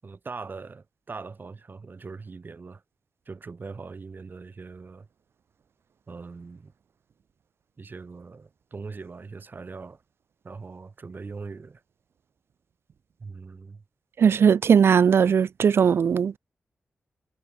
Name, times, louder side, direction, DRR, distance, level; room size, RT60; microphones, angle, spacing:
voice 1, 0.0-2.8 3.3-5.1 6.1-6.7 7.8-10.0 10.4-11.8 13.2-13.8, right 4 dB, 50° right, 7.3 m, -41 dB
voice 2, 14.2-16.4, right 7 dB, 70° right, 0.4 m, -19 dB
cardioid pair, 65°, 4 cm